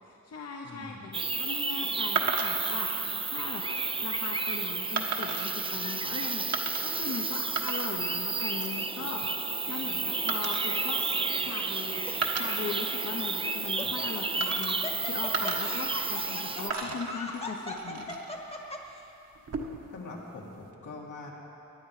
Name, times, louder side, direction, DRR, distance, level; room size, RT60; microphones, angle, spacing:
voice 1, 0.0-3.6 4.0-9.2 9.7-11.0 11.4-18.2, left 4 dB, 55° left, 0 dB, 1.0 m, -39 dB
voice 2, 0.6-1.0 19.9-21.3, left 3 dB, 80° left, -2 dB, 2.4 m, -43 dB
sound 1, 1.1-16.7, right 3 dB, 20° right, 0.4 m, -32 dB
sound 2, 2.2-2.8 3.5-3.8 5.0-5.6 6.5-7.1 7.4-8.1 8.4-8.8 10.3-11.7 12.1-13.4 14.4-15.0 15.3-16.4 16.7-18.4 19.3-19.9, right 4 dB, 55° right, 1.3 m, -35 dB
Laughter, 11.0-11.4 12.1-12.2 13.4-19.0, left 2 dB, 20° left, 1.2 m, -39 dB
20.5 x 10.5 x 4.9 m, 3.0 s
wide cardioid pair, 130°, 30 cm